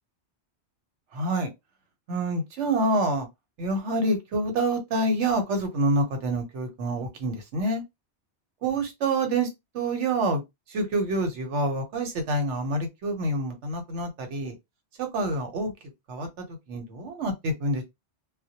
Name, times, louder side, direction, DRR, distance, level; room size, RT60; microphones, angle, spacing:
voice 1, 1.1-1.5 2.1-3.3 3.6-7.8 8.6-9.5 9.7-10.4 10.7-14.5 15.0-15.7 16.1-16.3 16.7-17.8, right 2 dB, 80° right, 1.0 m, -27 dB
2.1 x 2.1 x 2.7 m
omnidirectional pair, 1.2 m